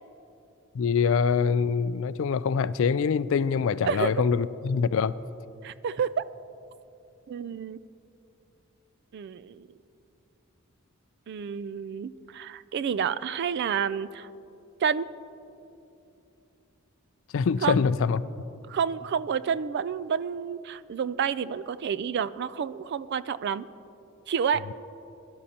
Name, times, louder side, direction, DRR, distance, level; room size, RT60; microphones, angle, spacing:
voice 1, 0.7-5.2 17.3-18.2, left 6 dB, 65° left, 16 dB, 0.3 m, -24 dB
voice 2, 5.6-6.2 7.3-7.8 9.1-9.7 11.3-14.3 14.8-15.1 17.6-17.8 18.7-23.7 24.3-24.7, right 7 dB, 55° right, 17 dB, 0.3 m, -29 dB
22.5 x 12.0 x 2.8 m, 2.8 s
head